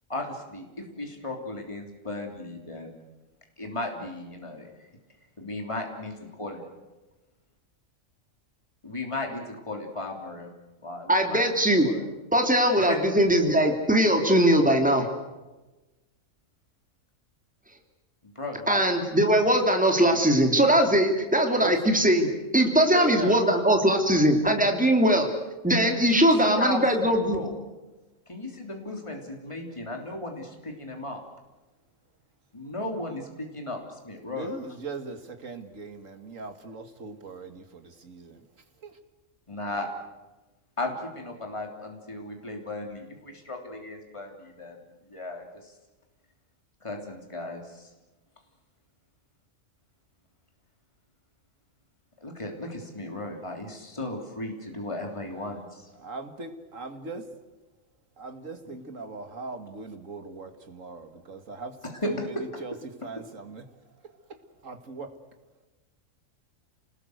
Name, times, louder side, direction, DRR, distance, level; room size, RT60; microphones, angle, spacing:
voice 1, 0.1-2.9 3.6-4.7 5.4-6.1 6.4-6.7 8.8-10.5 10.8-11.6 11.8-12.1 12.9-13.0 18.2-18.8 26.0-27.6 28.3-31.2 32.5-34.5 39.5-39.9 40.8-44.8 45.0-45.7 46.8-47.9 52.2-55.9 58.6-58.7 61.9-62.8, left 1 dB, 20° left, 2 dB, 3.5 m, -35 dB
voice 2, 11.1-11.9 12.3-15.1 18.7-25.3 25.6-27.4, right 1 dB, 5° right, 3 dB, 2.9 m, -21 dB
voice 3, 22.8-23.4 34.3-38.4 56.0-57.3 58.2-61.8 62.1-62.2 62.6-62.7 63.0-63.6 64.6-65.1, right 4 dB, 70° right, 8 dB, 2.4 m, -39 dB
28.5 x 20.0 x 8.0 m, 1.1 s
omnidirectional pair, 1.4 m